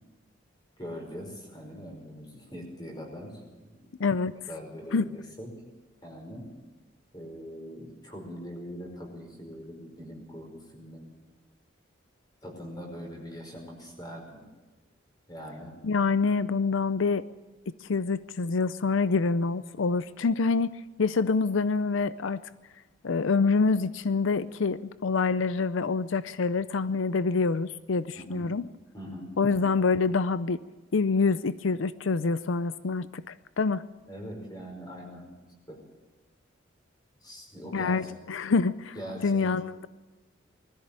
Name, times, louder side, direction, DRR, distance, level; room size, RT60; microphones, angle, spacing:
voice 1, 0.8-3.7 4.5-5.5 6.0-6.5 7.1-11.1 12.4-14.4 15.3-15.7 28.1-28.5 28.9-29.5 34.1-35.3 35.7-35.8 37.2-38.0 38.3-38.6 38.9-39.5, equal, 20° left, 2 dB, 5.1 m, -42 dB
voice 2, 4.0-4.3 4.9-5.0 15.8-17.2 17.8-22.4 23.0-28.6 29.4-30.6 30.9-33.8 37.7-38.9 39.2-39.9, left 4 dB, 85° left, 15 dB, 0.5 m, -26 dB
20.5 x 14.5 x 8.9 m, 1.2 s
head